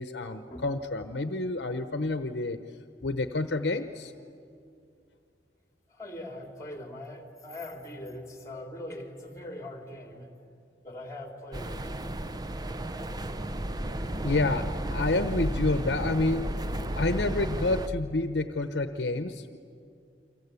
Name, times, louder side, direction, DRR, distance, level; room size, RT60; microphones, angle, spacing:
voice 1, 0.0-2.6 3.0-4.1 14.2-16.5 17.0-19.6, left 2 dB, 75° left, 9 dB, 0.9 m, -29 dB
voice 2, 5.9-10.3 10.8-12.0, left 1 dB, 20° left, 3 dB, 3.3 m, -41 dB
sound 1, 11.5-17.9, right 1 dB, 25° right, 0.7 m, -33 dB
29.0 x 25.0 x 8.3 m, 2.5 s
head